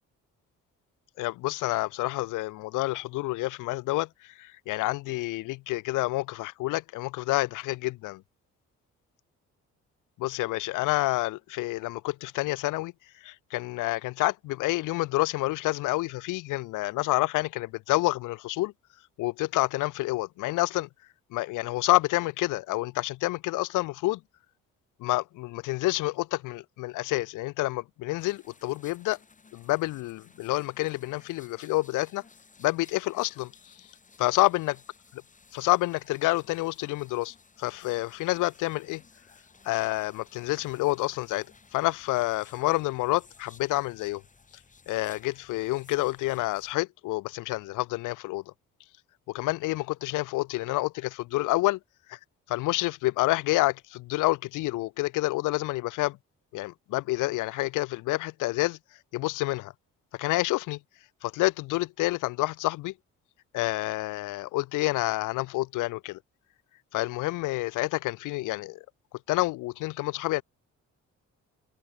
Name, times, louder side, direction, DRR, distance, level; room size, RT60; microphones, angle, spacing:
voice 1, 1.2-4.1 4.4-8.2 10.2-12.9 13.2-18.7 19.2-20.9 21.3-24.2 25.0-29.2 29.5-32.2 32.6-33.5 34.2-34.8 35.1-35.2 35.5-39.0 39.6-41.5 41.7-44.2 44.9-48.4 49.3-51.8 52.1-52.2 52.5-56.2 56.5-58.8 59.1-59.7 60.2-60.8 61.2-62.9 63.5-66.2 66.9-68.8 69.3-70.4, left 19 dB, 90° left, 0.7 m, -28 dB
sound 1, 28.2-46.7, left 4 dB, 25° left, 1.9 m, -58 dB
cardioid pair, 90°, 30 cm